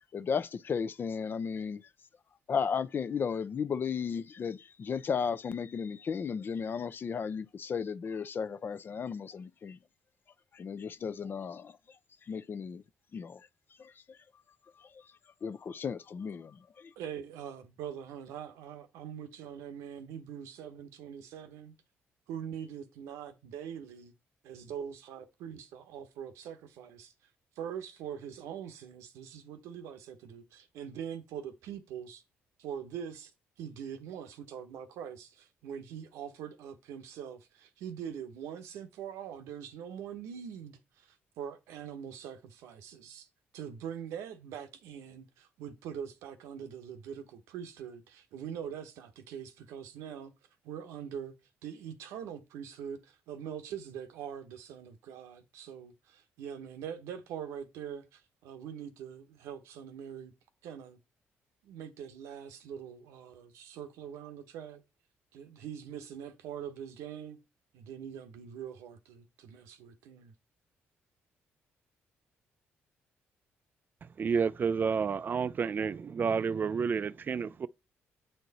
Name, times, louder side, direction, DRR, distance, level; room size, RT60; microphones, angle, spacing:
voice 1, 0.1-1.8 2.5-9.8 10.5-11.8 12.3-12.8 13.1-13.5 13.8-14.2 14.8-15.1 15.4-16.9, left 6 dB, 45° left, 0.6 m, -35 dB
voice 2, 17.0-21.7 22.3-24.1 24.4-27.1 27.6-32.2 32.6-33.3 33.6-43.3 43.5-50.3 50.6-51.3 51.6-60.3 60.6-61.0 61.6-64.8 65.3-67.4 67.7-70.3, right 8 dB, 90° right, 1.0 m, -43 dB
voice 3, 74.2-77.7, right 6 dB, 40° right, 0.5 m, -30 dB
8.0 x 4.5 x 4.1 m
cardioid pair, 80°, 5 cm